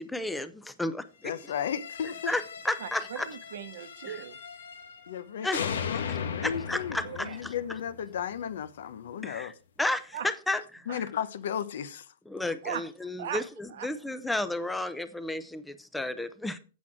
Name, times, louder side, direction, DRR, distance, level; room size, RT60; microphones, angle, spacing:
voice 1, 0.0-1.3 2.3-3.3 5.4-5.6 6.4-7.5 9.2-9.5 9.8-11.0 12.3-16.6, left 2 dB, 5° left, 0.6 m, -32 dB
voice 2, 1.2-2.3 5.1-9.5 10.9-12.1, left 8 dB, 70° left, 0.8 m, -34 dB
sound 1, 1.4-5.2 5.5-8.5, left 7 dB, 85° left, 1.4 m, -38 dB
voice 3, 2.8-4.4 7.0-7.4 10.1-10.3 10.9-11.0 12.4-12.9 13.2-13.4 13.7-13.9, right 9 dB, 65° right, 1.0 m, -38 dB
8.4 x 6.0 x 4.9 m
hypercardioid pair, 160°, 0 cm